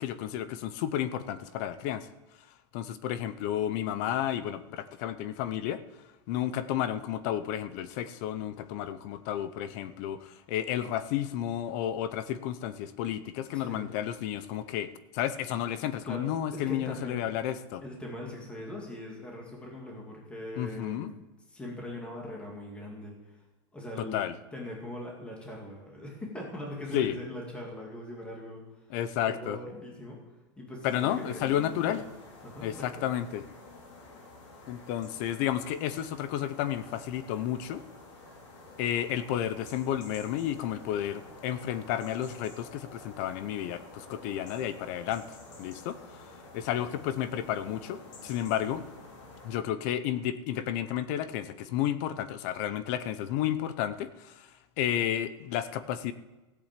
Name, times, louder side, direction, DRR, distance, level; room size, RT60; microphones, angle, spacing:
voice 1, 0.0-2.1 2.7-5.8 6.3-17.8 20.6-21.1 24.0-24.3 26.9-27.1 28.9-29.6 30.8-32.0 32.6-33.4 34.7-37.8 38.8-45.2 45.6-46.0 46.5-48.8 49.4-54.5 54.8-56.1, left 11 dB, 35° left, 14 dB, 0.7 m, -32 dB
voice 2, 13.5-13.9 16.0-16.2 16.5-17.3 17.8-21.1 21.5-23.4 23.7-24.2 24.5-29.0 29.2-30.2 30.6-32.1 32.4-33.1, left 1 dB, 5° left, -1 dB, 2.2 m, -41 dB
sound 1, 30.8-49.7, left 2 dB, 85° left, 4.9 m, -50 dB
15.5 x 8.7 x 7.5 m, 1.1 s
supercardioid pair, 180°, 15 cm